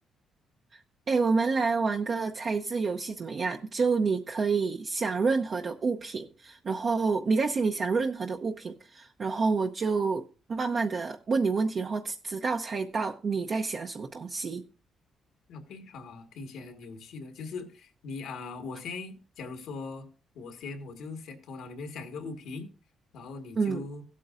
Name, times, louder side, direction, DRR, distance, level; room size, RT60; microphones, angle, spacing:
voice 1, 1.1-14.6 23.6-23.8, right 4 dB, 45° right, 0.7 m, -28 dB
voice 2, 15.5-20.1 20.3-22.7 23.1-24.0, left 4 dB, 80° left, 1.8 m, -40 dB
16.0 x 8.4 x 2.5 m
cardioid pair, 90°, 0 cm